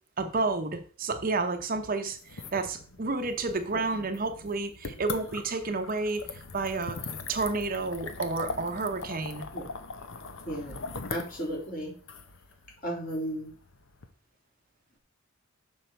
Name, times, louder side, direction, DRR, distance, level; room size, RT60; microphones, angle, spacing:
voice 1, 0.2-7.0 7.3-9.4, right 3 dB, 45° right, 7 dB, 0.7 m, -30 dB
sound 1, 2.2-14.1, left 4 dB, 65° left, 0.8 m, -41 dB
voice 2, 11.1-11.9 12.8-13.5, equal, 45° left, -2 dB, 3.0 m, -34 dB
6.5 x 5.6 x 4.4 m, 0.41 s
head